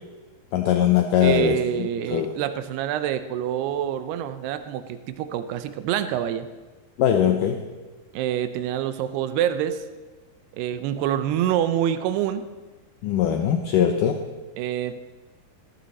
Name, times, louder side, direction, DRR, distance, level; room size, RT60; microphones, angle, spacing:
voice 1, 0.5-2.4 7.0-7.7 13.0-14.2, left 9 dB, 75° left, 5 dB, 2.1 m, -21 dB
voice 2, 1.2-6.5 8.1-9.8 10.5-12.5 14.6-14.9, right 10 dB, 90° right, 10 dB, 2.8 m, -26 dB
18.5 x 14.5 x 4.1 m, 1.3 s
omnidirectional pair, 4.5 m